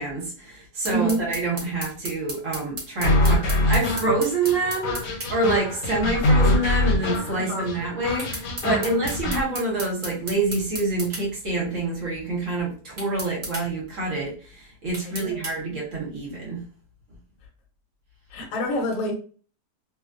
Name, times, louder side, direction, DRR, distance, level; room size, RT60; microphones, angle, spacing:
voice 1, 0.0-16.6, right 2 dB, 55° right, -3 dB, 1.2 m, -27 dB
Kitchen gas stove electric igniter, 0.8-5.3 8.2-11.2 13.0-13.7 14.9-15.6, right 2 dB, 40° right, 0.7 m, -34 dB
voice 2, 0.9-1.2 7.3-7.7 8.7-9.0 15.0-15.4 18.3-19.1, right 1 dB, 60° left, 2 dB, 1.0 m, -27 dB
sound 1, 3.0-9.4, left 1 dB, 80° left, 1.2 m, -24 dB
2.8 x 2.2 x 2.5 m, 0.39 s
omnidirectional pair, 1.8 m